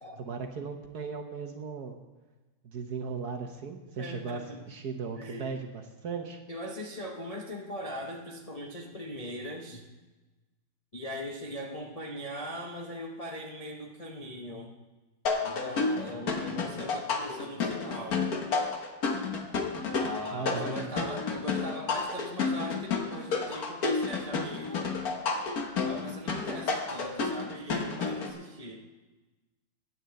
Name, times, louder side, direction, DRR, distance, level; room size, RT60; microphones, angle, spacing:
voice 1, 0.2-2.0 2.6-6.4 16.1-16.3 20.3-20.8, right 5 dB, 55° right, 5 dB, 1.2 m, -37 dB
voice 2, 4.0-4.6 5.1-5.5 6.5-9.8 10.9-14.7 15.4-18.3 19.9-25.0 25.8-28.8, equal, 35° left, -1 dB, 0.6 m, -40 dB
sound 1, 15.3-28.3, left 4 dB, 50° left, 1.5 m, -31 dB
9.9 x 9.0 x 7.7 m, 1.2 s
omnidirectional pair, 2.4 m